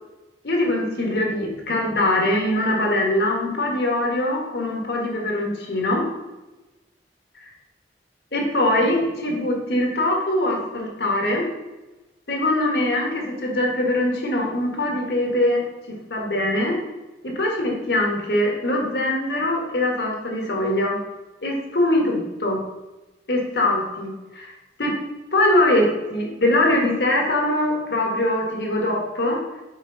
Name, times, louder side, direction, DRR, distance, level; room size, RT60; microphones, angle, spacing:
voice 1, 0.4-6.1 7.4-7.5 8.3-11.4 12.3-15.6 15.9-16.8 17.2-21.0 21.4-22.6 23.3-24.9 25.3-29.4, left 1 dB, 70° left, 1 dB, 1.4 m, -22 dB
6.5 x 4.5 x 3.9 m, 1.1 s
head